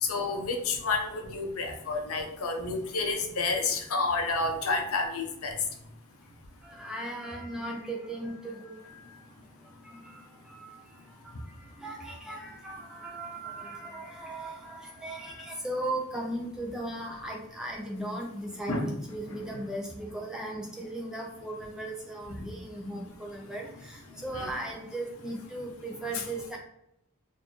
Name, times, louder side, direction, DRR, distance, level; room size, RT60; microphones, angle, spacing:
voice 1, 0.0-5.6 18.7-19.0 19.3-19.6 22.3-22.5 24.3-24.5 26.1-26.2, left 3 dB, 90° left, 4 dB, 0.7 m, -30 dB
voice 2, 6.6-9.2 9.9-10.2 10.5-10.8 11.2-26.6, right 1 dB, 5° right, -1 dB, 0.7 m, -37 dB
4.0 x 2.7 x 3.0 m, 0.79 s
head